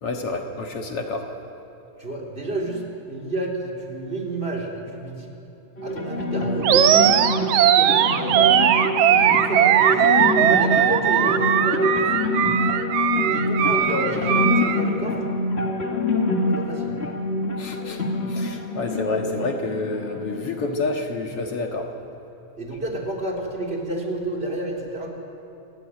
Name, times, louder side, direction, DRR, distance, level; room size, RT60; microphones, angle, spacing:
voice 1, 0.0-1.3 17.6-18.0 18.3-21.9, left 3 dB, 55° left, 3 dB, 2.4 m, -28 dB
voice 2, 2.0-5.3 5.8-8.5 9.1-12.1 13.3-15.3 16.6-16.9 22.6-25.1, right 1 dB, 20° right, -1 dB, 3.4 m, -30 dB
sound 1, 5.8-20.7, left 2 dB, 25° left, 1.8 m, -26 dB
Animal, 6.6-14.8, right 10 dB, 70° right, 1.7 m, -19 dB
28.0 x 16.0 x 9.8 m, 2.9 s
omnidirectional pair, 3.4 m